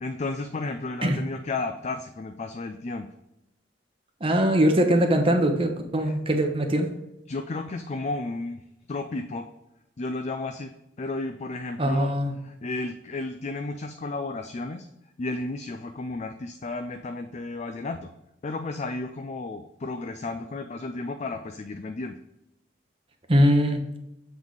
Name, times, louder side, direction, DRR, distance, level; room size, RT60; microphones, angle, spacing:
voice 1, 0.0-3.1 6.0-6.1 7.3-8.6 8.9-9.4 10.0-10.7 11.0-12.1 12.4-14.9 15.2-18.1 18.4-22.2, left 3 dB, 40° left, 7 dB, 0.4 m, -33 dB
voice 2, 4.2-6.9 11.8-12.3 23.3-23.8, equal, 30° right, 4 dB, 1.0 m, -21 dB
7.1 x 4.1 x 4.7 m, 0.90 s
head